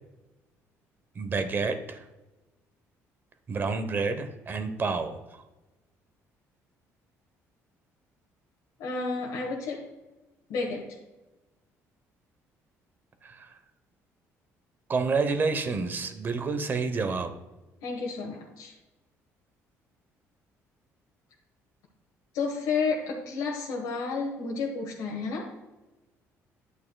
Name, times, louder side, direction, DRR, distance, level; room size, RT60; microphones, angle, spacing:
voice 1, 1.1-2.0 3.5-5.4 13.2-13.6 14.9-17.3, right 4 dB, 35° right, 9 dB, 0.9 m, -29 dB
voice 2, 8.8-9.8 10.5-10.9 17.8-18.7 22.3-25.5, left 4 dB, 85° left, -2 dB, 1.5 m, -31 dB
9.8 x 8.3 x 2.3 m, 1.1 s
cardioid pair, 110°, 6 cm